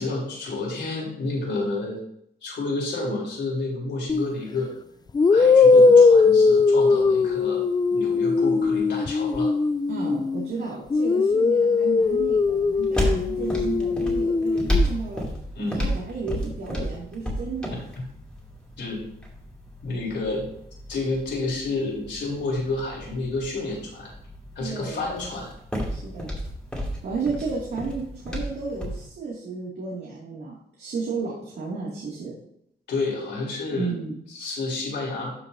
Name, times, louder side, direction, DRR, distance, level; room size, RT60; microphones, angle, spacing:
voice 1, 0.0-2.0 2.4-4.7 5.3-7.6 7.9-9.5 15.5-15.9 17.7-17.8 18.8-19.1 19.8-20.4 20.9-24.1 24.6-25.5 32.9-33.9 34.3-35.3, left 3 dB, 90° left, -3 dB, 3.7 m, -30 dB
sound 1, 4.1-4.3 5.1-10.5 10.9-14.9, left 4 dB, 25° left, 0.4 m, -19 dB
voice 2, 9.9-15.3 15.7-17.9 24.6-25.1 25.9-26.3 27.0-32.4 33.7-34.1, right 4 dB, 70° right, -5 dB, 2.5 m, -33 dB
sound 2, 12.0-29.1, equal, 5° left, 2.8 m, -32 dB
12.5 x 6.6 x 2.7 m, 0.71 s
wide cardioid pair, 135°, 18 cm